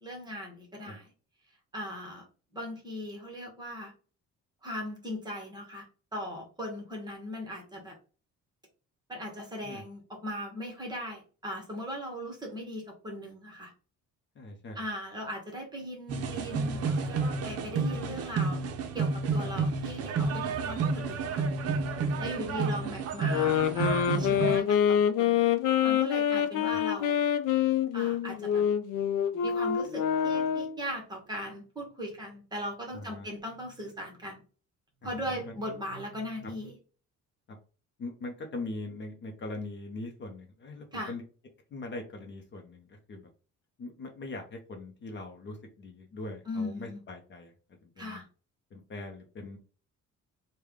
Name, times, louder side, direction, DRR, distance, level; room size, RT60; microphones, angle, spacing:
voice 1, 0.0-1.1 1.7-2.3 2.5-3.9 4.6-5.9 6.1-8.0 9.1-13.7 14.7-18.6 18.9-21.5 22.2-25.4 25.8-27.3 27.9-28.6 29.4-34.4 35.0-36.8 40.9-41.1 46.4-47.0 48.0-48.2, equal, 15° right, 1 dB, 1.0 m, -39 dB
voice 2, 14.4-14.8 19.6-19.7 32.9-33.3 35.0-35.5 38.0-41.2 41.7-43.3 43.8-47.5 47.8-48.2 48.7-49.6, left 2 dB, 40° left, 2 dB, 0.7 m, -41 dB
sound 1, 16.1-24.6, right 4 dB, 55° right, 0.6 m, -30 dB
sound 2, 23.3-30.8, left 9 dB, 85° left, 0.5 m, -26 dB
3.3 x 2.2 x 3.4 m, 0.37 s
cardioid pair, 165°, 30 cm